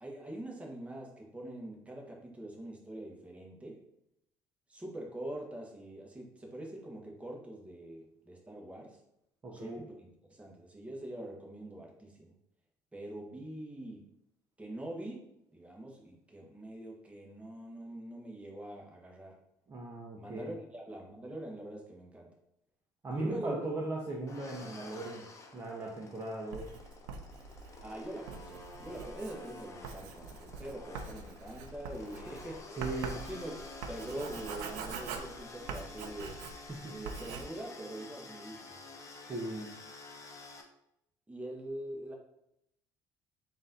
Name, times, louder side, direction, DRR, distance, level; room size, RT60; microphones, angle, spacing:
voice 1, 0.0-3.8 4.7-9.0 9.5-12.3 12.9-14.0 14.6-15.2 15.5-19.4 20.1-22.3 23.1-23.6 27.8-32.8 33.1-33.5 33.9-36.4 36.9-38.8 41.3-42.1, right 1 dB, 15° right, -1 dB, 1.1 m, -44 dB
voice 2, 9.4-9.7 19.7-20.5 23.0-25.2 25.5-26.7 32.8-33.2 36.7-36.9 39.3-39.7, right 2 dB, 30° right, -3 dB, 0.8 m, -38 dB
sound 1, 24.3-40.6, left 3 dB, 30° left, 0.7 m, -50 dB
Writing, 26.5-36.8 37.0-37.4, right 5 dB, 90° right, 0.4 m, -44 dB
3.8 x 2.6 x 3.9 m, 0.80 s
supercardioid pair, 85°, 10 cm